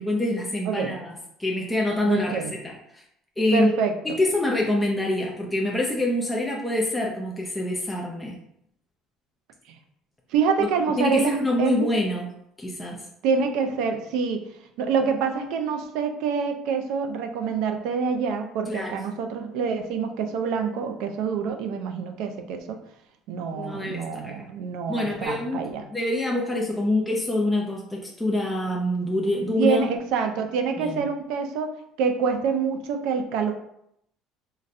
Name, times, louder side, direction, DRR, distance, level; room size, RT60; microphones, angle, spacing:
voice 1, 0.0-3.0 3.4-3.7 4.0-8.4 10.6-10.7 11.0-12.3 12.6-13.0 18.7-19.0 23.5-24.5 24.9-25.6 25.9-29.9 30.8-31.0, left 1 dB, 5° left, -3 dB, 0.4 m, -26 dB
voice 2, 2.0-2.5 3.5-4.2 10.3-11.9 13.2-14.4 14.8-22.8 23.3-25.8 29.6-31.7 32.0-33.5, right 5 dB, 75° right, 5 dB, 0.4 m, -26 dB
3.9 x 2.1 x 2.5 m, 0.75 s
cardioid pair, 135°, 0 cm